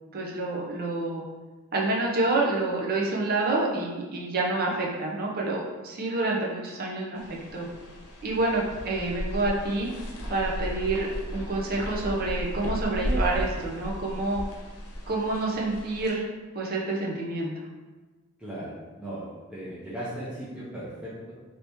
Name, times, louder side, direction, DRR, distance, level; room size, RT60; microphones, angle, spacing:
voice 1, 0.1-1.2 1.7-7.7 8.2-9.9 10.3-14.4 15.1-16.2 16.5-17.5, right 2 dB, 45° right, -2 dB, 0.6 m, -28 dB
sound 1, 7.1-16.1, equal, 90° left, 0.7 m, -35 dB
voice 2, 18.4-21.3, right 1 dB, 5° right, -10 dB, 0.6 m, -37 dB
2.9 x 2.8 x 3.4 m, 1.3 s
head